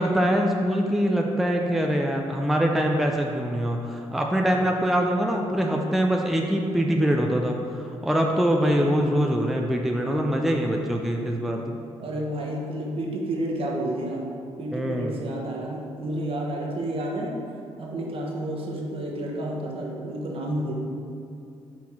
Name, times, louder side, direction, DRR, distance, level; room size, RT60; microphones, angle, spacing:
voice 1, 0.0-11.8 14.7-15.2, equal, ahead, 1 dB, 0.5 m, -24 dB
voice 2, 12.0-14.2 14.6-17.3 17.8-20.7, right 1 dB, 55° right, -1 dB, 1.2 m, -30 dB
5.9 x 4.2 x 4.5 m, 2.5 s
cardioid pair, 75°, 11 cm